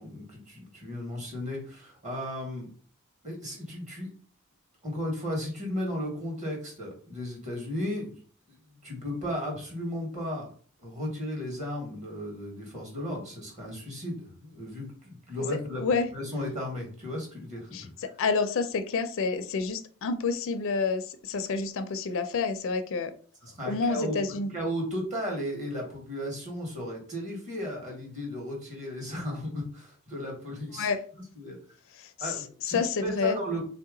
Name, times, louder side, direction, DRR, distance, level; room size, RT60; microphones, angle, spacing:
voice 1, 0.0-2.7 3.2-4.1 4.8-8.1 8.5-10.5 10.8-18.1 23.4-30.9 31.3-31.6 32.2-33.6, equal, 35° right, -1 dB, 1.5 m, -35 dB
voice 2, 18.2-23.1 23.7-24.5 30.8-31.0 32.0-32.3 32.6-33.4, left 4 dB, 60° left, 9 dB, 0.4 m, -28 dB
3.4 x 2.8 x 3.7 m, 0.43 s
head